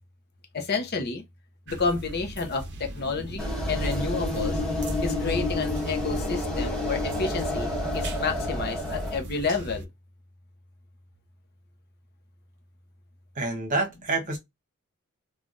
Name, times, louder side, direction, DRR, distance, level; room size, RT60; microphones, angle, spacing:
voice 1, 0.5-1.2 1.7-4.6 5.0-7.7 7.9-9.9, left 4 dB, 50° left, 0.7 m, -30 dB
sound 1, 1.7-9.9, right 1 dB, 55° right, 0.6 m, -36 dB
sound 2, 3.4-9.2, left 2 dB, 5° left, 1.3 m, -30 dB
voice 2, 13.4-14.4, right 2 dB, 35° right, 1.0 m, -27 dB
3.2 x 2.3 x 2.4 m
head